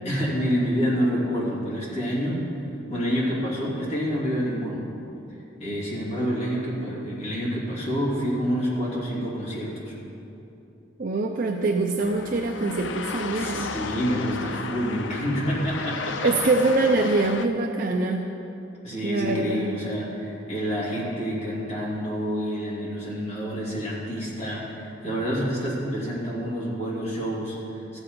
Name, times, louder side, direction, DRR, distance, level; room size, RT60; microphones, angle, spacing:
voice 1, 0.0-2.5 2.9-4.8 5.6-9.9 13.3-16.3 18.8-28.0, equal, 35° left, -5 dB, 2.7 m, -28 dB
voice 2, 11.0-13.7 16.2-18.3 19.0-19.7, right 3 dB, 50° right, 2 dB, 0.5 m, -24 dB
sound 1, 12.0-17.5, left 5 dB, 80° left, 0.5 m, -34 dB
14.5 x 7.2 x 5.3 m, 2.9 s
head